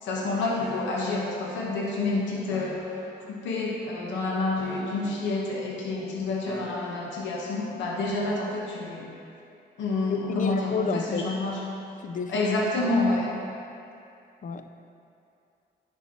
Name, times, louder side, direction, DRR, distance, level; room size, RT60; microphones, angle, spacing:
voice 1, 0.0-2.8 3.3-9.1 9.8-11.6 12.3-13.3, left 2 dB, 85° left, -3 dB, 0.9 m, -28 dB
sound 1, 0.6-1.2 2.5-3.2 4.5-5.4 6.5-7.2 8.3-8.6, left 1 dB, 20° left, 1.3 m, -43 dB
voice 2, 10.3-11.3 12.0-12.5 14.4-14.7, left 5 dB, 45° left, 8 dB, 0.4 m, -30 dB
10.0 x 4.5 x 2.8 m, 2.6 s
cardioid pair, 65°, 19 cm